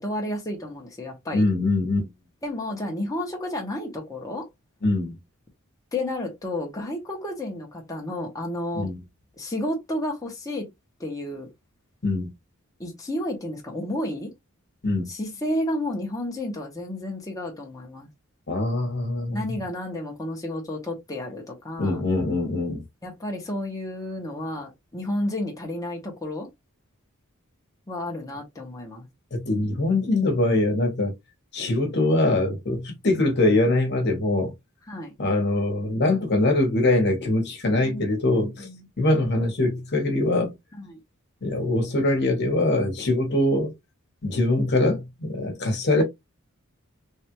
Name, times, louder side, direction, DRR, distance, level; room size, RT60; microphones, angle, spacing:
voice 1, 0.0-1.4 2.4-4.5 5.9-8.9 9.4-10.7 11.0-11.5 12.8-14.3 15.1-18.1 19.3-22.0 23.0-26.5 27.9-29.0 34.9-35.1 37.8-38.8 40.8-41.0, left 1 dB, 15° left, 0.8 m, -31 dB
voice 2, 1.3-2.1 4.8-5.2 8.7-9.0 12.0-12.3 14.8-15.1 18.5-19.4 21.8-22.8 29.3-31.1 31.5-34.5 35.2-38.7 39.0-40.5 41.4-43.7 44.2-46.0, left 2 dB, 50° left, 1.1 m, -23 dB
3.2 x 2.4 x 2.9 m
head